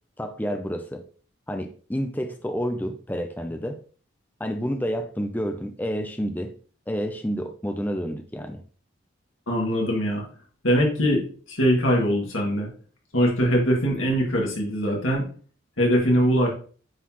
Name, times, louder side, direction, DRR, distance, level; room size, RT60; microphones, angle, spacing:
voice 1, 0.2-1.0 1.5-3.8 4.4-6.6 6.9-8.6, equal, 10° left, 6 dB, 0.5 m, -29 dB
voice 2, 9.5-10.2 10.6-12.7 13.1-15.2 15.8-16.5, equal, 90° left, -2 dB, 2.2 m, -22 dB
9.4 x 4.1 x 3.1 m, 0.41 s
head